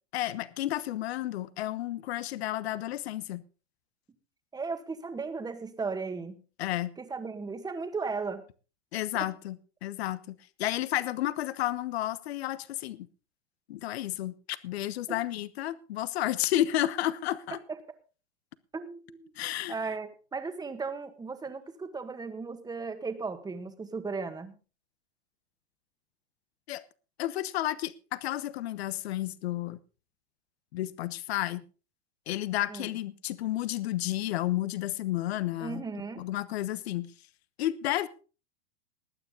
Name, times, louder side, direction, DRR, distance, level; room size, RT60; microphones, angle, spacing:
voice 1, 0.1-3.4 6.6-6.9 8.9-13.1 13.7-17.6 19.4-19.8 26.7-26.8 27.2-29.8 30.7-31.6 32.3-35.8 36.2-37.1 37.6-38.1, left 14 dB, 70° left, 1.1 m, -31 dB
voice 2, 4.5-6.4 7.0-8.5 9.1-9.3 15.1-15.2 17.5-17.8 18.7-19.3 19.7-24.5 32.7-32.9 35.6-36.2, right 4 dB, 10° right, 1.7 m, -36 dB
20.0 x 9.0 x 3.9 m
hypercardioid pair, 125°, 33 cm